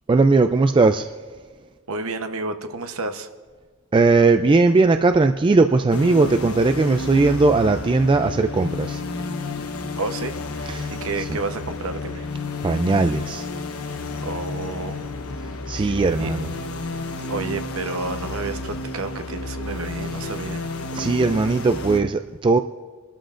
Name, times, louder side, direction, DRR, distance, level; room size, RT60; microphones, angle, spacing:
voice 1, 0.1-1.1 3.9-9.0 10.7-10.9 11.2-11.4 12.6-13.5 15.7-16.5 20.9-22.6, right 3 dB, 20° right, 7 dB, 0.3 m, -18 dB
voice 2, 1.9-3.3 9.9-12.3 14.2-15.1 15.7-16.3 17.2-20.7, right 3 dB, 70° right, 7 dB, 1.0 m, -31 dB
sound 1, 5.9-22.0, left 2 dB, 75° left, 1.1 m, -31 dB
28.0 x 12.5 x 2.5 m, 1.5 s
head